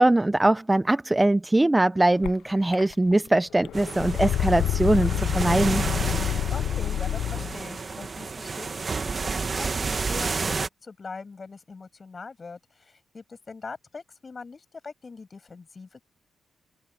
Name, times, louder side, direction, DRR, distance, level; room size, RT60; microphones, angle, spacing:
voice 1, 0.0-5.8, right 2 dB, 15° right, 0.5 m, -21 dB
sound 1, 2.2-2.3 2.7-3.3 3.6-7.5, left 11 dB, 90° left, 0.4 m, -27 dB
sound 2, 3.7-10.7, right 4 dB, 35° right, 1.4 m, -31 dB
voice 2, 6.2-16.0, left 4 dB, 35° left, 7.9 m, -42 dB
open air
cardioid pair, 110°, 0 cm